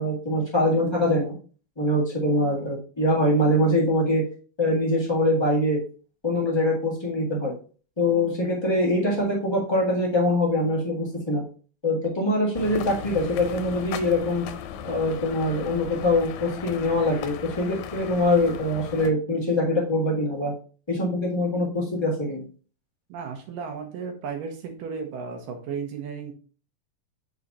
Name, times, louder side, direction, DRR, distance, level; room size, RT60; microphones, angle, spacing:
voice 1, 0.0-1.3 1.8-4.2 4.6-5.8 6.2-7.5 8.0-11.4 11.8-14.4 14.8-20.5 20.9-22.4, left 1 dB, 30° left, -4 dB, 0.5 m, -23 dB
sound 1, 12.5-19.1, left 9 dB, 90° left, 2.4 m, -37 dB
voice 2, 23.1-26.3, right 6 dB, 75° right, 5 dB, 2.8 m, -34 dB
6.4 x 4.1 x 4.1 m, 0.39 s
omnidirectional pair, 4.0 m